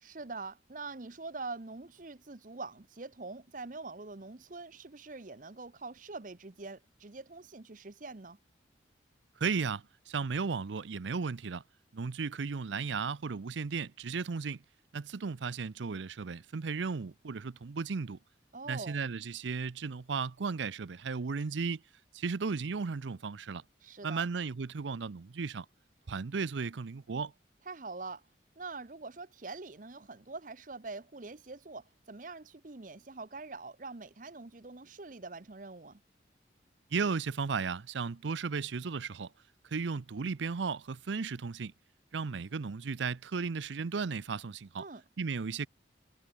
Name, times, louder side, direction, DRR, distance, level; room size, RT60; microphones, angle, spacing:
voice 1, 0.0-8.4 18.5-19.0 23.8-24.2 27.7-28.2 28.6-36.0 44.8-45.0, right 3 dB, 45° right, 0.9 m, -44 dB
voice 2, 9.4-11.6 11.9-14.6 14.9-18.2 18.7-21.8 22.1-23.6 24.0-25.7 26.1-27.3 36.9-39.3 39.7-41.7 42.1-44.8 45.2-45.7, right 5 dB, 85° right, 0.6 m, -35 dB
head